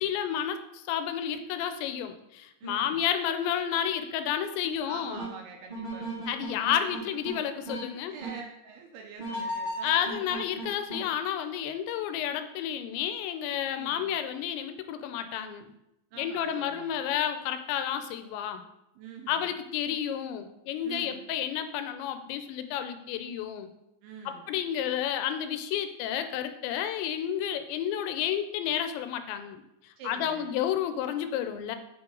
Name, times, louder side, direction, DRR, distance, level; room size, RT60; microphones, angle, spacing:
voice 1, 0.0-5.2 6.3-8.2 9.8-15.7 16.2-18.6 19.3-23.7 24.3-29.6 30.0-31.8, left 9 dB, 90° left, 9 dB, 2.9 m, -31 dB
voice 2, 2.6-3.0 4.6-6.3 7.9-10.1 13.8-14.1 16.1-17.0 19.0-19.6 20.8-21.3 24.0-24.5 30.0-30.5, right 6 dB, 80° right, 2 dB, 2.4 m, -45 dB
sound 1, 5.1-5.3 5.7-7.3 7.6-7.8 8.2-8.3 9.2-11.0, right 1 dB, 50° right, 0.5 m, -35 dB
7.1 x 5.9 x 3.8 m, 0.86 s
omnidirectional pair, 5.1 m